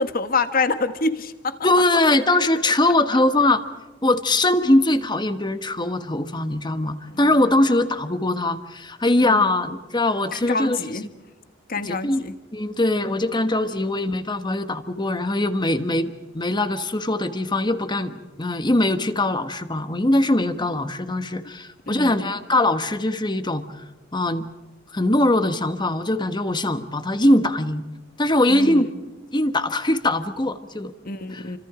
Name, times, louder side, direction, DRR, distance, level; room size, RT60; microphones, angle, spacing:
voice 1, 0.0-1.6 7.1-7.3 9.3-9.4 10.3-11.0 11.7-12.3 13.8-13.9 21.9-22.3 28.5-28.9 31.0-31.6, left 3 dB, 50° left, 10 dB, 1.5 m, -26 dB
voice 2, 1.6-3.6 4.0-10.8 11.8-12.2 12.5-23.6 24.1-24.5 24.9-27.8 28.2-28.9 29.3-30.9 31.3-31.4, left 1 dB, 25° left, 10 dB, 1.4 m, -21 dB
29.5 x 25.5 x 5.1 m, 1.1 s
head